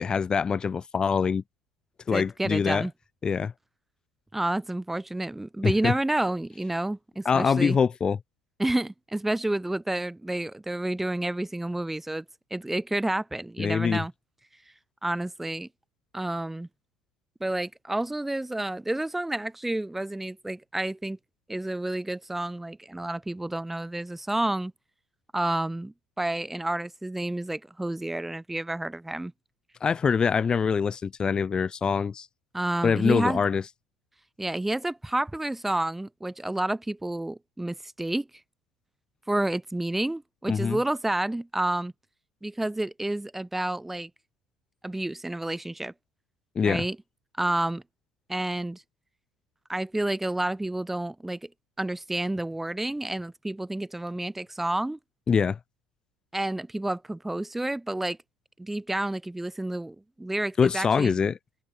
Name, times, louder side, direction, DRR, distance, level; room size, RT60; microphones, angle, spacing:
voice 1, 0.0-1.4 2.1-2.9 3.2-3.5 5.6-5.9 7.2-8.2 13.6-14.0 29.8-32.3 32.8-33.6 40.5-40.8 46.5-46.8 55.3-55.6 60.6-61.4, left 6 dB, 30° left, 3.0 m, -24 dB
voice 2, 2.1-2.9 4.3-7.8 8.6-12.2 12.5-14.1 15.0-15.7 16.1-16.7 17.4-21.2 21.5-24.7 25.3-29.3 32.5-33.4 34.4-38.3 39.3-41.9 42.4-44.1 44.8-45.9 46.6-47.0 47.4-47.8 48.3-48.8 49.7-51.5 51.8-55.0 56.3-58.2 58.6-61.2, right 1 dB, 10° right, 4.8 m, -30 dB
hypercardioid pair, 70°, 3 cm